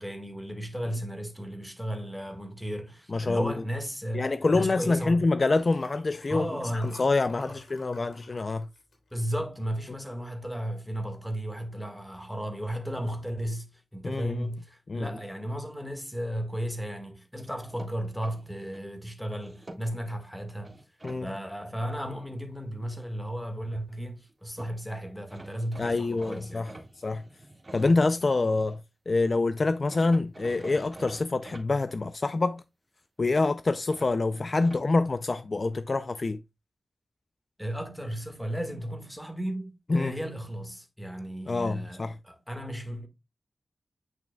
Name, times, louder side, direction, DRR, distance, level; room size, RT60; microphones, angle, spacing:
voice 1, 0.0-5.2 6.3-7.0 7.4-7.6 9.1-20.8 21.2-26.7 37.6-43.1, equal, 5° left, 1.6 m, -34 dB
voice 2, 3.1-3.5 4.1-6.5 6.7-8.7 14.0-14.5 14.9-15.2 21.0-21.3 25.8-26.7 27.0-27.2 27.7-28.8 29.1-32.6 33.2-36.4 39.9-40.1 41.5-42.2, left 3 dB, 45° left, 0.4 m, -26 dB
Liquid, 5.3-9.9 10.4-10.7 10.9-11.0, left 2 dB, 85° left, 3.4 m, -52 dB
sound 1, 17.4-18.8 19.4-20.2 20.6-21.2 24.3-24.4 24.6-24.7 25.3-28.8 29.9-31.7 33.9-34.9, right 2 dB, 25° right, 1.7 m, -47 dB
9.2 x 5.7 x 2.2 m
wide cardioid pair, 110°, 0 cm